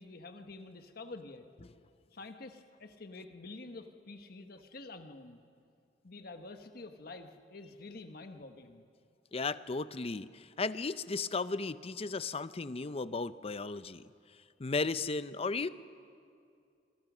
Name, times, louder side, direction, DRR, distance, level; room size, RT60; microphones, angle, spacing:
voice 1, 0.0-1.5 2.1-5.4 6.0-8.8, left 3 dB, 60° left, 6 dB, 1.2 m, -48 dB
voice 2, 9.3-14.0 14.6-15.7, left 4 dB, 35° left, 14 dB, 0.6 m, -35 dB
26.5 x 24.0 x 6.2 m, 2.4 s
head